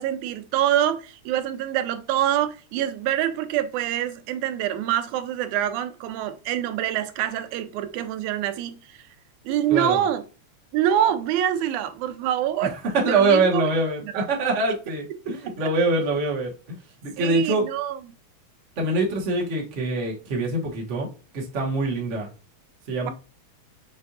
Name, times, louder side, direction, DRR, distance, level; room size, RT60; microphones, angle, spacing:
voice 1, 0.0-9.0 9.5-10.2 10.7-12.7 13.1-13.7 14.0-14.3 15.6-15.7 17.2-18.0 23.1-23.2, right 11 dB, 85° right, 2.0 m, -25 dB
voice 2, 9.7-10.0 12.6-16.8 17.0-17.6 18.8-21.1 21.3-22.3 22.9-23.1, right 3 dB, 55° right, 0.8 m, -24 dB
6.1 x 2.5 x 2.7 m
omnidirectional pair, 3.3 m